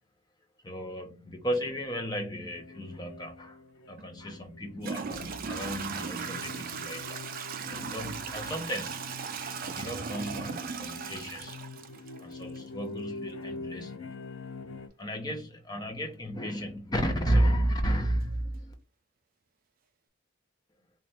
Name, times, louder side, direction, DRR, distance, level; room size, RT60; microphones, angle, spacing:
voice 1, 0.6-3.6 3.9-7.2 7.6-9.1 9.7-11.6 12.2-14.2 15.0-18.7, equal, 20° left, 0.7 m, -33 dB
sound 1, 2.5-14.9, left 3 dB, 65° left, 0.4 m, -45 dB
Toilet flush / Trickle dribble, 4.0-4.1 4.8-12.6, right 6 dB, 40° right, 0.4 m, -37 dB
3.2 x 2.4 x 4.1 m
head